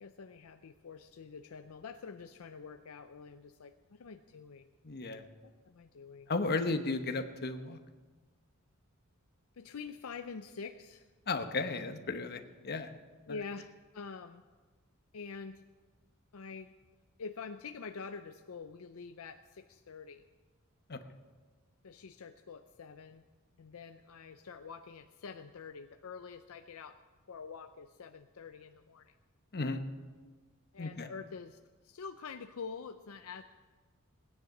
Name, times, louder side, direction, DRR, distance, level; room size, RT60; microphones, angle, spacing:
voice 1, 0.0-4.7 5.4-6.3 9.5-11.1 13.3-14.4 15.1-15.6 16.3-16.7 17.2-20.2 21.8-23.2 23.6-27.0 27.3-29.1 30.7-31.6 31.8-33.4, left 5 dB, 75° left, 8 dB, 0.5 m, -46 dB
voice 2, 4.8-5.3 6.3-7.8 11.3-12.9 13.3-13.4 20.9-21.0 29.5-29.8 30.8-31.1, left 3 dB, 50° left, 7 dB, 1.0 m, -34 dB
17.5 x 9.9 x 5.9 m, 1.3 s
head